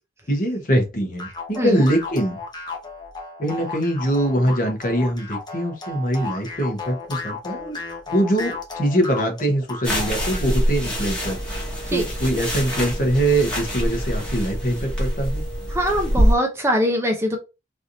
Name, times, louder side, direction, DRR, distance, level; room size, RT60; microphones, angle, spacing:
voice 1, 0.3-2.4 3.4-7.8 8.1-11.4 11.9-15.4, right 1 dB, 50° left, 3 dB, 1.0 m, -23 dB
sound 1, 1.2-10.5, left 3 dB, 25° left, 0.7 m, -34 dB
Clothing movements, 9.8-16.3, equal, 5° left, 1.1 m, -24 dB
voice 2, 15.7-17.4, equal, 15° right, 3 dB, 0.6 m, -22 dB
3.3 x 2.6 x 2.6 m, 0.27 s
head